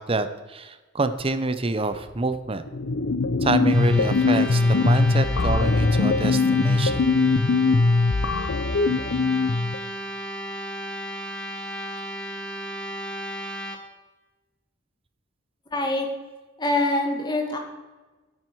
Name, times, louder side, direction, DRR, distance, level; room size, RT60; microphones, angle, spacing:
voice 1, 0.0-2.6 3.4-7.0, right 3 dB, 30° right, 11 dB, 0.7 m, -27 dB
sound 1, 2.7-9.8, left 3 dB, 90° left, 0.6 m, -21 dB
sound 2, 3.6-13.8, equal, 5° left, 1.3 m, -34 dB
voice 2, 15.7-16.1 16.6-17.6, left 2 dB, 25° left, 2 dB, 1.9 m, -24 dB
9.6 x 9.3 x 4.7 m, 1.2 s
head